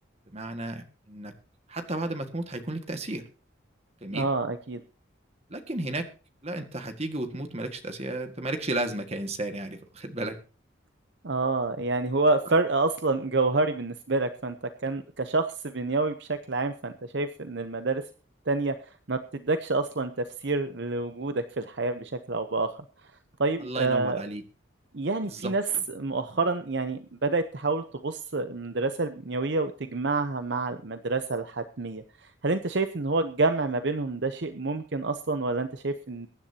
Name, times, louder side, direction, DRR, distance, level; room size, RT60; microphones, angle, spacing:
voice 1, 0.3-1.3 1.7-3.2 4.0-4.3 5.5-6.1 6.4-10.4 23.6-24.4 25.2-25.5, right 2 dB, 30° right, 6 dB, 1.8 m, -33 dB
voice 2, 4.1-4.8 11.2-14.6 14.8-18.0 18.5-18.7 19.1-22.8 23.4-24.2 24.9-32.0 32.4-36.3, right 3 dB, 55° right, 9 dB, 0.8 m, -28 dB
22.5 x 10.5 x 2.9 m, 0.38 s
head